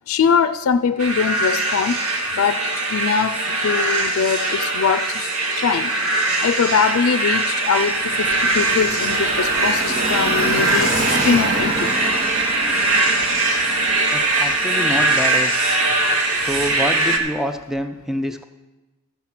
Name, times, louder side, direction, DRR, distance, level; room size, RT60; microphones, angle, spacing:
voice 1, 0.1-2.0 2.4-2.6 2.9-5.3 5.6-5.9 6.4-11.9, left 6 dB, 80° left, 10 dB, 0.4 m, -22 dB
sound 1, 1.0-17.2, right 2 dB, 90° right, 1.5 m, -21 dB
Car passing by / Traffic noise roadway noise, 7.7-14.6, right 2 dB, 50° right, 1.3 m, -28 dB
Camera, 7.7-12.0, right 1 dB, 70° right, 2.8 m, -43 dB
voice 2, 14.1-15.7 16.4-18.4, equal, ahead, 7 dB, 0.4 m, -27 dB
13.5 x 7.2 x 5.9 m, 1.1 s
head